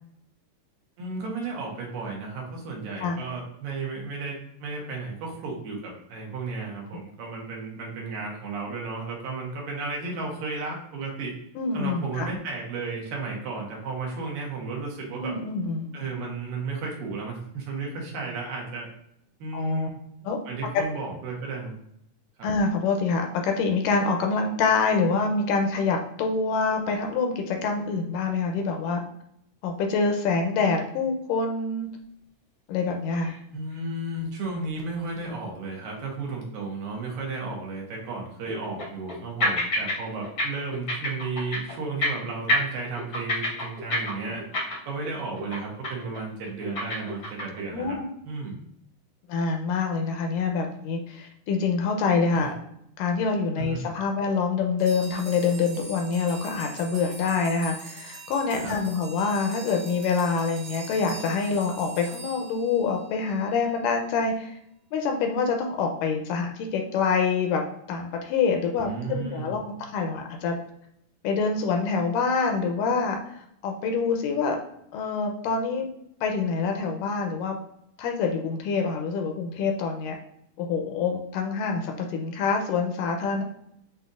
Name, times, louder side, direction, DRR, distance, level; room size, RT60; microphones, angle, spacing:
voice 1, 1.0-11.4 11.7-15.4 15.9-18.9 19.4-20.0 20.5-21.8 22.4-22.5 33.5-44.4 44.9-48.0 48.2-48.6 52.3-52.5 53.6-53.9 58.6-58.7 68.8-69.6, right 3 dB, 90° right, -1 dB, 2.9 m, -33 dB
voice 2, 11.6-12.3 15.2-15.9 19.5-19.9 20.2-20.4 22.4-29.0 29.6-31.9 32.7-33.3 47.7-48.0 49.3-52.5 53.0-64.5 64.9-67.6 67.9-70.6 71.2-74.6 74.9-75.9 76.2-77.6 78.0-80.2 80.6-83.4, left 4 dB, 80° left, 4 dB, 2.1 m, -26 dB
sound 1, 33.2-33.4 33.7-33.8 34.4-34.5 37.7-37.8 38.5-39.2 39.4-40.0 40.2-40.4 40.7-41.7 42.0-42.2 42.5-45.1 45.4-45.6 45.8-46.2 46.4-47.6, left 1 dB, 65° left, 0.9 m, -27 dB
sound 2, 54.8-63.3, right 3 dB, 60° right, 1.8 m, -43 dB
7.7 x 2.7 x 2.5 m, 0.75 s
omnidirectional pair, 3.9 m